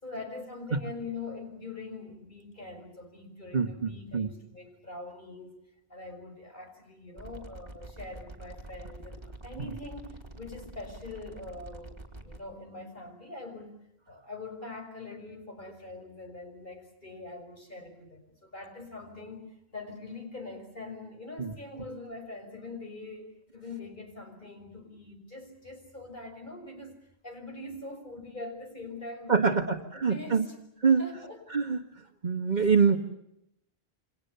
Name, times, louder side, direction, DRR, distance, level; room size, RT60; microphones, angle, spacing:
voice 1, 0.0-5.6 5.9-13.8 14.1-30.5 31.0-31.4 32.9-33.0, left 3 dB, 50° left, 4 dB, 6.2 m, -43 dB
voice 2, 3.5-4.3 21.4-21.5 29.3-30.5 30.8-31.0 31.5-31.8 32.2-33.0, right 5 dB, 45° right, 2 dB, 1.7 m, -25 dB
sound 1, 7.2-12.4, right 2 dB, 25° right, 4.0 m, -46 dB
29.5 x 25.5 x 6.9 m, 0.80 s
omnidirectional pair, 1.1 m